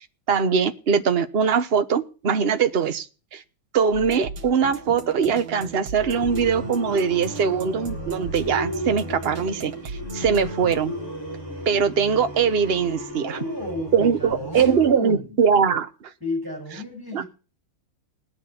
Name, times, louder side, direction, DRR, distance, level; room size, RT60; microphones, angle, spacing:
voice 1, 0.3-3.1 3.3-3.4 3.7-9.7 10.1-10.9 11.6-13.4 13.9-16.1 17.1-17.2, right 6 dB, 35° right, 1.1 m, -21 dB
sound 1, 3.9-10.7, right 5 dB, 65° right, 2.5 m, -37 dB
sound 2, 6.0-14.9, left 1 dB, 10° left, 7.1 m, -35 dB
voice 2, 13.1-15.3 16.2-17.2, left 2 dB, 10° right, 7.0 m, -33 dB
20.0 x 8.8 x 4.4 m
omnidirectional pair, 2.2 m